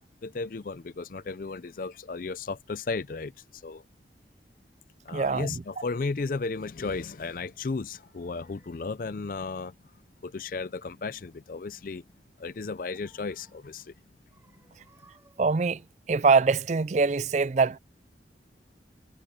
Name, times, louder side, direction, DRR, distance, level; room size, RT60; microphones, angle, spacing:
voice 1, 0.2-3.8 5.0-9.9 10.2-12.0 12.4-13.9, left 4 dB, 50° left, 0.5 m, -34 dB
voice 2, 5.1-5.5 15.4-15.8 16.1-17.8, right 4 dB, 40° right, 0.4 m, -23 dB
sound 1, 7.5-9.2 12.3-13.8 14.3-16.1 16.6-16.8, right 2 dB, 15° right, 5.7 m, -64 dB
head